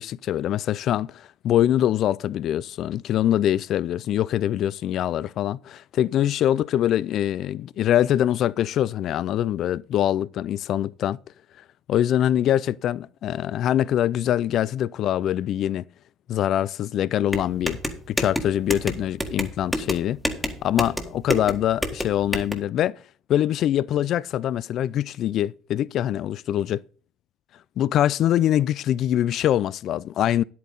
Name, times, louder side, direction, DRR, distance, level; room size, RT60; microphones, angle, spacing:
voice 1, 0.0-11.2 11.9-15.8 16.3-17.8 18.1-20.2 20.6-22.9 23.3-26.8 27.8-30.4, left 11 dB, 50° left, 0.4 m, -23 dB
sound 1, 17.3-22.5, equal, ahead, 1.6 m, -29 dB
10.5 x 8.5 x 4.0 m
cardioid pair, 120°, 0 cm